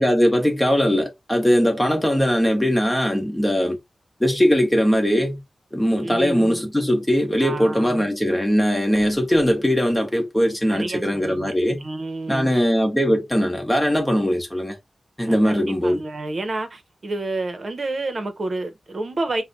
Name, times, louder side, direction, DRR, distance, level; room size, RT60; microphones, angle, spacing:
voice 1, 0.0-3.8 4.2-5.4 5.7-11.8 12.3-14.8 15.2-16.0, equal, 5° left, 1.1 m, -20 dB
voice 2, 6.0-6.6 7.4-8.1 10.7-11.5 11.8-12.5 15.2-19.4, right 2 dB, 50° right, 0.9 m, -29 dB
5.7 x 2.2 x 2.7 m
wide cardioid pair, 115°, 0 cm